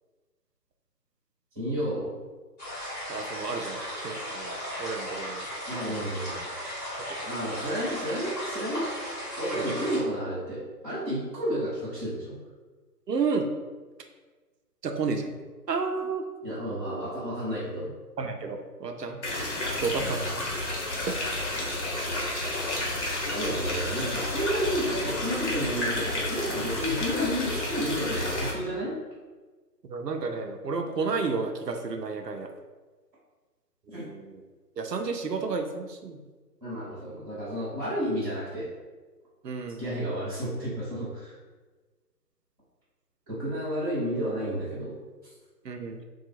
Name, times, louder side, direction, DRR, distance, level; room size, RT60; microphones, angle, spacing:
voice 1, 1.5-2.1 5.7-6.4 7.2-8.9 9.4-12.4 16.4-17.9 20.0-20.2 23.3-28.9 33.9-34.0 36.6-38.7 39.8-41.4 43.3-45.0, equal, 10° right, -11 dB, 1.2 m, -31 dB
sound 1, 2.6-10.0, equal, 10° left, 1.1 m, -36 dB
voice 2, 3.1-5.5 5.9-6.0 9.5-9.9 13.1-13.5 14.8-15.3 15.7-16.2 18.2-19.2 19.8-20.3 21.1-21.2 29.9-32.5 33.9-34.3 34.8-36.2 39.4-39.8 45.6-46.0, right 4 dB, 75° right, 5 dB, 0.7 m, -31 dB
sound 2, 19.2-28.5, left 1 dB, 45° left, 1.1 m, -31 dB
3.6 x 2.4 x 4.3 m, 1.3 s
figure-of-eight pair, 155°, 49 cm